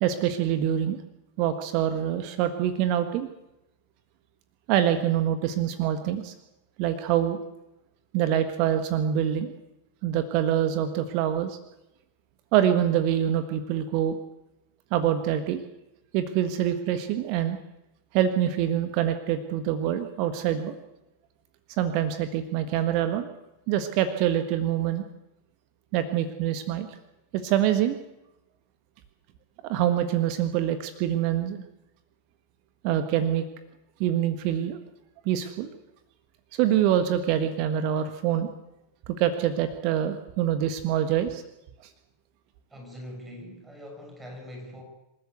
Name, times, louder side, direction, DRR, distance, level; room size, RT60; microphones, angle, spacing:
voice 1, 0.0-1.0 1.4-3.3 4.7-6.3 6.8-7.4 8.1-9.5 10.0-11.6 12.5-14.2 14.9-15.6 16.1-17.6 18.1-20.7 21.8-23.3 23.7-25.0 25.9-26.9 27.3-28.0 29.6-31.6 32.8-33.4 34.0-34.8 35.2-35.7 36.5-38.5 39.1-41.4, right 10 dB, 45° right, 9 dB, 1.5 m, -25 dB
voice 2, 42.7-44.8, equal, 10° right, 2 dB, 6.6 m, -42 dB
27.0 x 13.5 x 8.2 m, 0.92 s
figure-of-eight pair, 90°, 0 cm